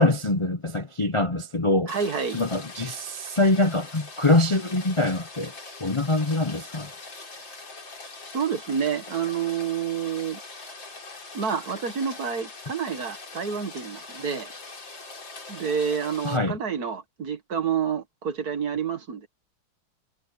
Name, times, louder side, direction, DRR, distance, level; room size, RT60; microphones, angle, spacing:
voice 1, 0.0-1.9 2.3-5.5 5.8-6.9 16.2-16.6, left 2 dB, 45° left, 0.4 m, -24 dB
Rain, 1.9-16.4, left 3 dB, 85° left, 4.7 m, -42 dB
voice 2, 1.9-2.4 8.3-10.4 11.3-14.5 15.5-19.3, right 7 dB, 55° right, 2.1 m, -28 dB
omnidirectional pair, 2.0 m